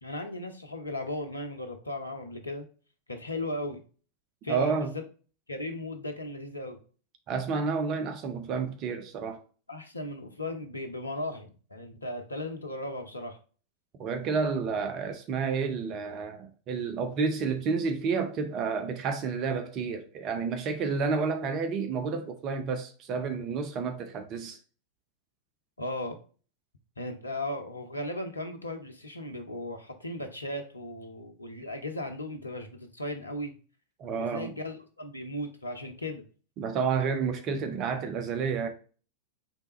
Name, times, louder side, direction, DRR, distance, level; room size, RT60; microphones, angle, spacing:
voice 1, 0.0-2.7 3.1-3.8 4.4-4.9 5.5-6.8 9.7-13.4 25.8-26.2 27.0-33.5 34.2-36.3, left 1 dB, 80° left, 0.7 m, -36 dB
voice 2, 4.5-4.9 7.3-9.4 14.0-24.6 34.0-34.5 36.6-38.7, right 5 dB, 35° right, 0.6 m, -30 dB
4.4 x 3.4 x 3.0 m
figure-of-eight pair, 90°, 0 cm